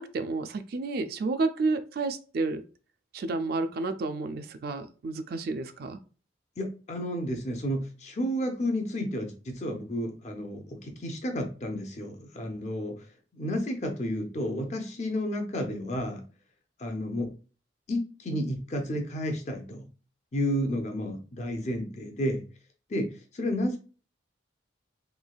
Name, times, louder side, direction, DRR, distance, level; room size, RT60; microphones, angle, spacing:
voice 1, 0.0-2.6 3.1-6.0, right 3 dB, 50° right, 9 dB, 0.3 m, -30 dB
voice 2, 6.6-13.0 13.4-16.2 16.8-17.3 17.9-19.9 20.3-22.4 22.9-23.8, equal, 35° left, 4 dB, 0.6 m, -31 dB
3.2 x 3.1 x 2.3 m, 0.37 s
head